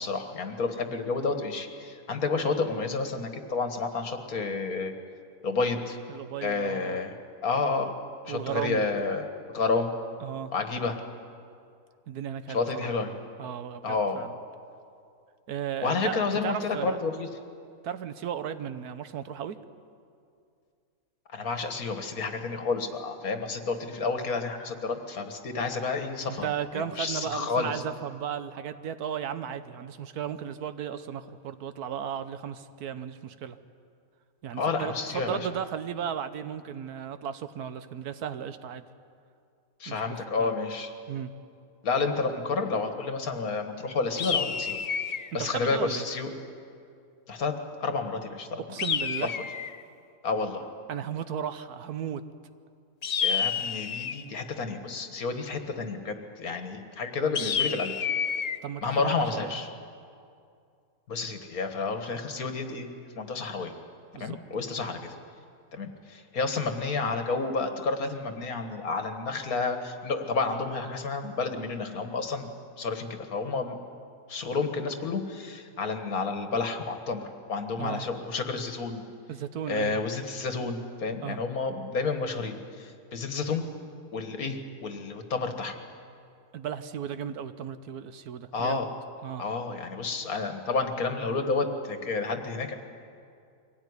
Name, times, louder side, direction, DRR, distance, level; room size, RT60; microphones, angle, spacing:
voice 1, 0.0-4.9 5.4-6.0 6.4-7.1 7.4-7.9 8.2-9.9 10.5-11.0 12.5-13.1 13.8-14.2 15.8-17.3 21.3-26.5 26.7-27.8 34.5-35.5 39.8-40.9 41.8-44.8 45.3-46.3 47.3-47.5 47.8-48.6 49.2-49.3 50.2-50.7 53.2-57.9 58.8-59.7 61.1-62.9 63.2-63.7 64.2-65.1 65.7-72.5 72.8-73.8 74.3-79.0 79.7-83.7 84.1-85.8 88.5-88.9 89.4-92.7, left 4 dB, 70° left, 6 dB, 2.1 m, -30 dB
voice 2, 6.1-7.0 8.3-8.9 10.2-10.5 12.1-12.9 13.4-14.4 15.5-17.0 17.8-19.6 26.3-33.6 34.4-38.8 39.9-40.6 41.1-41.3 45.4-46.1 48.7-49.3 50.9-52.2 58.6-59.6 64.1-64.4 77.8-78.1 79.3-80.0 81.2-81.4 86.5-88.8 89.2-89.5, right 8 dB, 90° right, 11 dB, 1.4 m, -35 dB
sound 1, 44.2-45.3 48.8-49.8 53.0-54.3 57.3-58.6, left 7 dB, 90° left, 0.3 m, -29 dB
23.5 x 17.5 x 9.7 m, 2.4 s
omnidirectional pair, 1.6 m